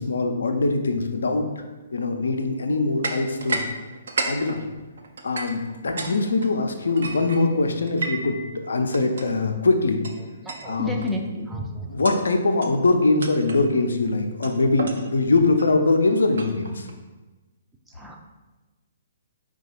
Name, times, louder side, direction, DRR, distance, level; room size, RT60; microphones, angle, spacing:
voice 1, 0.0-1.5 1.9-3.6 4.2-4.6 5.2-10.0 10.7-11.1 11.9-16.9, left 3 dB, 65° left, 5 dB, 0.5 m, -22 dB
sound 1, 3.0-3.7 4.0-6.1 6.4-8.4 8.9-9.3 10.0-10.2 10.5-10.7 11.0-11.3 11.9-12.3 12.6-12.8 13.2-13.7 14.4-16.9, right 3 dB, 60° right, 0.5 m, -32 dB
voice 2, 10.4-12.0 17.9-18.2, left 1 dB, 5° right, 1 dB, 0.4 m, -31 dB
4.6 x 2.3 x 4.2 m, 1.1 s
figure-of-eight pair, 125°, 0 cm